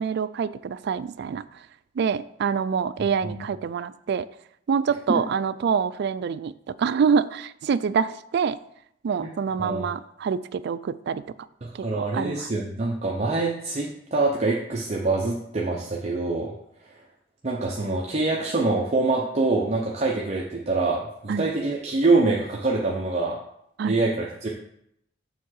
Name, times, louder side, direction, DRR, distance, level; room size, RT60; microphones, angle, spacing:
voice 1, 0.0-1.4 2.0-4.3 4.7-8.6 9.0-11.2 11.7-12.5 21.3-21.5 23.8-24.0, right 6 dB, 60° right, 16 dB, 0.3 m, -26 dB
voice 2, 11.6-16.5 17.4-23.4 23.8-24.5, right 3 dB, 35° right, -2 dB, 0.7 m, -25 dB
7.0 x 3.6 x 6.4 m, 0.75 s
head